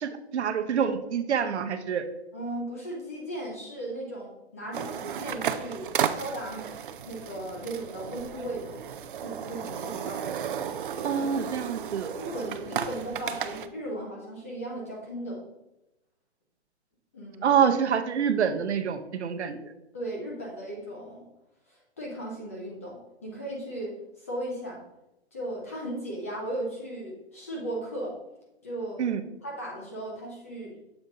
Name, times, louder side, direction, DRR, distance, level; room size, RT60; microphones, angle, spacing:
voice 1, 0.0-2.0 11.0-12.1 17.4-19.6 29.0-29.2, right 7 dB, 80° right, 8 dB, 0.8 m, -26 dB
voice 2, 2.3-5.8 6.1-6.7 7.1-8.8 9.2-10.3 11.1-11.6 12.1-15.5 17.1-17.6 19.9-21.3 21.7-24.8 25.3-28.1 28.6-29.0 29.4-30.8, right 1 dB, 15° left, -2 dB, 0.4 m, -36 dB
sound 1, 4.7-13.7, right 8 dB, 50° right, 0.4 m, -34 dB
7.0 x 3.8 x 3.9 m, 0.90 s
hypercardioid pair, 165°, 33 cm